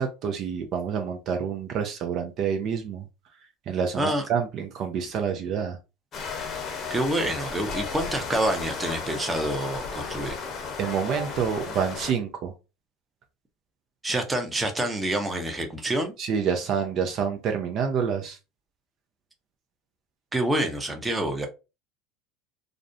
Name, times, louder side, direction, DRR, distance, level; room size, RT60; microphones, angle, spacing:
voice 1, 0.0-3.0 3.7-5.8 10.8-12.5 16.2-18.4, right 7 dB, 50° right, 0.5 m, -28 dB
sound 1, 6.1-12.1, left 5 dB, 40° left, 0.7 m, -34 dB
voice 2, 6.9-10.4 14.0-16.1 20.3-21.5, right 1 dB, 15° right, 0.7 m, -27 dB
2.5 x 2.1 x 2.5 m
hypercardioid pair, 80°, 0 cm